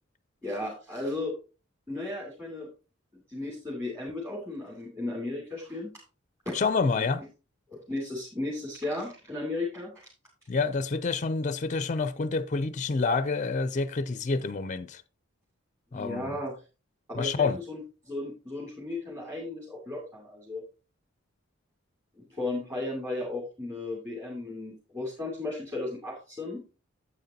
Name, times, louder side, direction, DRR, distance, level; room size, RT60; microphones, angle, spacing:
voice 1, 0.4-1.4 1.9-2.7 3.1-5.9 6.4-6.5 6.9-7.1 7.7-9.9 15.9-16.6 17.1-17.8 18.1-20.6 22.2-26.6, left 2 dB, 15° right, 2.6 m, -35 dB
voice 2, 6.5-7.2 10.5-15.0 15.9-16.3 17.1-17.6, left 4 dB, 35° left, 0.5 m, -28 dB
9.1 x 8.3 x 2.8 m
head